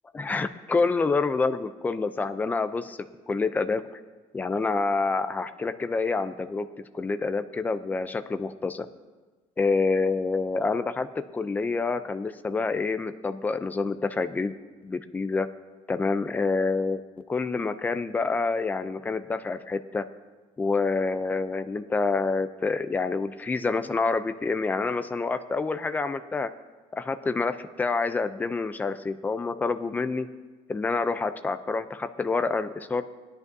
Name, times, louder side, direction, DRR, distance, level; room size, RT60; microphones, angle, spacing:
voice 1, 0.1-3.0 3.3-3.8 4.3-6.7 6.9-8.9 9.6-11.1 11.3-14.5 14.8-15.5 15.9-17.0 17.3-20.0 20.6-26.5 26.9-30.3 30.7-33.0, left 4 dB, 15° left, 11 dB, 0.4 m, -27 dB
19.0 x 10.5 x 2.7 m, 1.3 s
cardioid pair, 175°, 13 cm